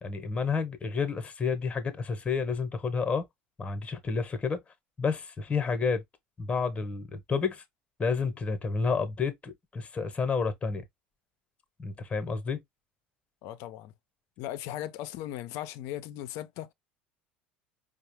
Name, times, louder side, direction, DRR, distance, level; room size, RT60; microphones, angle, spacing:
voice 1, 0.0-3.2 3.6-4.6 5.0-6.0 6.4-7.6 8.0-10.8 11.8-12.6, left 5 dB, 25° left, 0.8 m, -30 dB
voice 2, 13.4-13.9 14.4-16.7, left 13 dB, 60° left, 0.5 m, -38 dB
4.7 x 2.0 x 2.9 m
hypercardioid pair, 75°, 5 cm